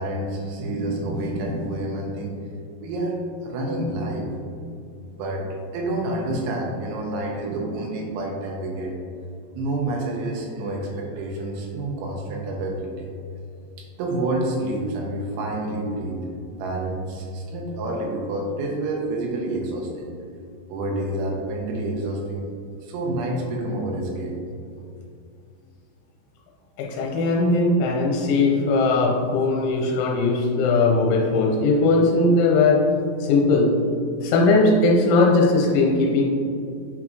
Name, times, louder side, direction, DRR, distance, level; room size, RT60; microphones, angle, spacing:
voice 1, 0.0-2.3 2.8-4.3 5.1-9.0 9.5-13.1 13.8-16.3 16.6-20.1 20.7-22.5 22.8-24.4, right 1 dB, 80° right, -1 dB, 3.1 m, -28 dB
voice 2, 26.8-32.8 33.2-33.8 34.2-36.2, left 3 dB, 90° left, -2 dB, 3.1 m, -19 dB
8.5 x 3.6 x 3.0 m, 2.5 s
omnidirectional pair, 5.5 m